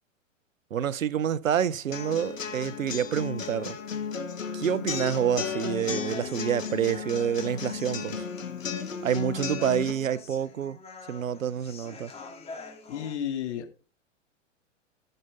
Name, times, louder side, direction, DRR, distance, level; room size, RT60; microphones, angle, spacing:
voice 1, 0.7-3.8 4.5-8.3 9.0-10.8 11.1-12.1, right 9 dB, 85° right, 0.7 m, -28 dB
sound 1, 1.9-9.9, left 6 dB, 80° left, 2.0 m, -34 dB
Human voice, 5.1-13.1, left 3 dB, 15° left, 2.4 m, -47 dB
voice 2, 12.9-13.8, left 9 dB, 60° left, 2.2 m, -32 dB
15.0 x 6.7 x 3.5 m
hypercardioid pair, 110°, 38 cm